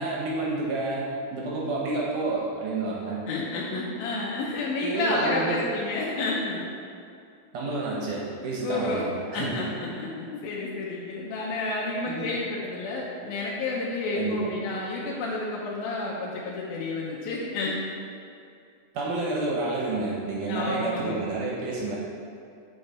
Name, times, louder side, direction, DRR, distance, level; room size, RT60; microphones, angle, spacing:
voice 1, 0.0-3.3 4.8-5.6 7.5-9.7 12.0-12.3 14.2-14.5 18.9-22.0, right 2 dB, 70° right, -4 dB, 2.1 m, -29 dB
voice 2, 3.3-6.7 8.6-9.1 9.3-17.8 20.5-21.2, left 2 dB, 75° left, -5 dB, 2.4 m, -30 dB
7.8 x 5.1 x 4.2 m, 2.5 s
omnidirectional pair, 4.6 m